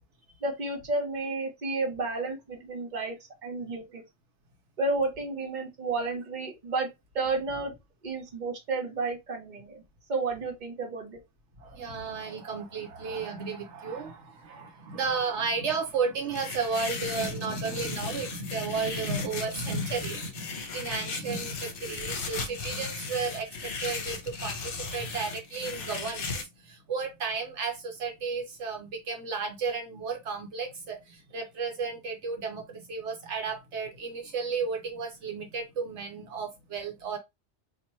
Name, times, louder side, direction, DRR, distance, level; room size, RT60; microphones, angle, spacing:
voice 1, 0.4-3.2 3.4-4.0 4.8-6.9 7.1-7.8 8.0-9.8 10.1-11.2, right 3 dB, 40° right, 1.2 m, -31 dB
voice 2, 11.6-37.2, right 4 dB, 75° right, 1.1 m, -33 dB
sound 1, 16.4-26.4, left 4 dB, 55° left, 0.9 m, -36 dB
2.9 x 2.6 x 4.2 m
omnidirectional pair, 1.2 m